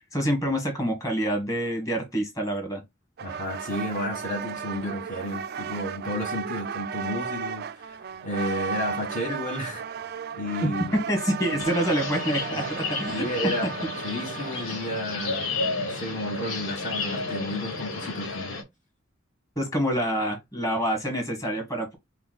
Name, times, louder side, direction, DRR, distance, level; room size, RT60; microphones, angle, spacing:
voice 1, 0.1-2.8 10.6-13.2 19.6-22.0, equal, 15° left, 1.6 m, -27 dB
voice 2, 3.2-9.8 10.3-11.0 11.5-11.7 13.1-15.5 15.7-18.6, left 1 dB, 40° left, 1.3 m, -32 dB
sound 1, 3.2-14.9, right 6 dB, 50° right, 0.3 m, -35 dB
sound 2, 11.6-18.6, left 3 dB, 80° left, 1.4 m, -32 dB
5.6 x 2.2 x 4.0 m
head